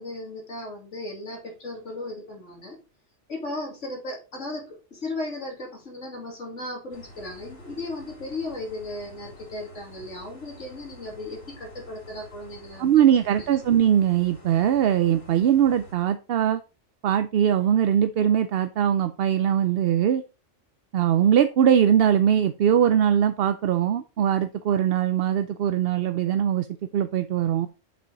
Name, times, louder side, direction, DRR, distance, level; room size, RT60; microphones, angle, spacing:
voice 1, 0.0-2.8 3.3-13.1 13.4-13.5, left 2 dB, 80° left, 0 dB, 2.8 m, -36 dB
sound 1, 6.9-15.9, left 1 dB, 55° left, 2.0 m, -48 dB
voice 2, 12.8-16.6 17.0-20.2 20.9-26.7 26.9-27.7, right 9 dB, 60° right, 10 dB, 0.7 m, -21 dB
7.5 x 5.6 x 3.9 m, 0.30 s
omnidirectional pair, 1.2 m